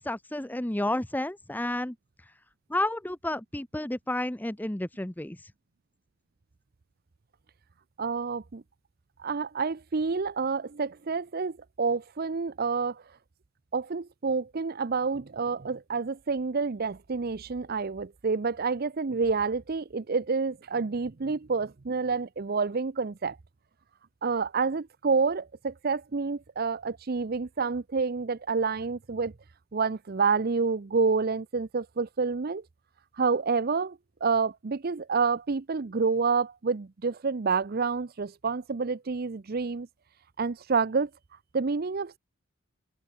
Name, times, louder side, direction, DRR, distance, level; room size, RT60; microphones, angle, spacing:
voice 1, 0.0-1.9 2.7-5.4, left 1 dB, 10° left, 0.7 m, -31 dB
voice 2, 8.0-8.6 9.2-13.0 13.7-23.4 24.2-29.3 29.7-32.6 33.2-39.9 40.4-41.1 41.5-42.2, right 4 dB, 45° right, 0.6 m, -28 dB
open air
head